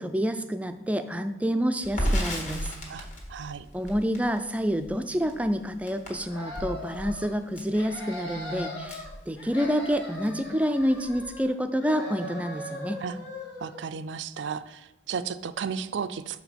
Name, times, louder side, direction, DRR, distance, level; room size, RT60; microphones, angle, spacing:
voice 1, 0.0-2.7 3.7-13.0, equal, 10° right, 8 dB, 0.3 m, -28 dB
Crackle, 1.8-9.9 10.2-10.4 10.7-11.4, equal, 40° left, 1.6 m, -34 dB
voice 2, 2.9-3.7 13.0-13.2 13.6-16.4, right 6 dB, 85° right, 13 dB, 0.4 m, -34 dB
sound 1, 6.2-7.3 7.7-9.1 9.4-11.5 11.8-13.8, left 1 dB, 90° left, 1.9 m, -39 dB
6.2 x 4.9 x 5.2 m, 0.98 s
head